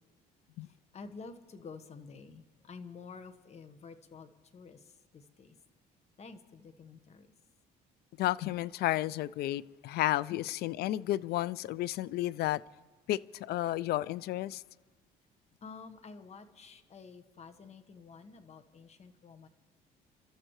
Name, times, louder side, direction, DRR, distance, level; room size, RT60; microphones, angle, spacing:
voice 1, 0.6-5.6 6.2-7.3 10.3-10.4 15.6-19.5, left 4 dB, 40° left, 1.3 m, -50 dB
voice 2, 8.2-12.6 13.1-14.6, left 15 dB, 70° left, 0.4 m, -32 dB
29.0 x 13.0 x 3.1 m
cardioid pair, 110°, 17 cm